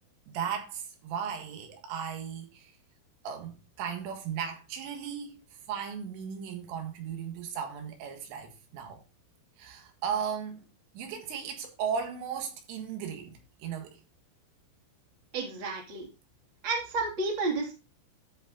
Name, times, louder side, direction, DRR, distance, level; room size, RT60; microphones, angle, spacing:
voice 1, 0.3-2.7 3.2-5.4 5.7-9.0 9.6-10.6 10.9-14.0, right 7 dB, 85° right, 4.1 m, -36 dB
voice 2, 15.3-16.1 16.6-17.7, right 3 dB, 30° right, 2.7 m, -31 dB
13.5 x 5.2 x 3.8 m
omnidirectional pair, 5.6 m